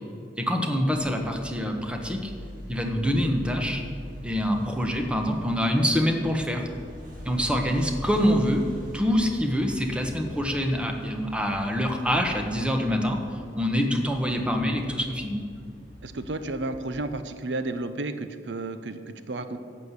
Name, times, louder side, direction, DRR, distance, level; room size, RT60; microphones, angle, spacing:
voice 1, 0.4-2.3 2.7-3.8 4.2-6.7 7.2-8.6 8.9-15.4, equal, 5° right, 3 dB, 1.2 m, -25 dB
sound 1, 0.9-17.1, equal, 50° right, 2.9 m, -43 dB
voice 2, 16.0-19.6, right 2 dB, 90° right, 10 dB, 0.7 m, -32 dB
11.5 x 7.5 x 8.2 m, 2.3 s
head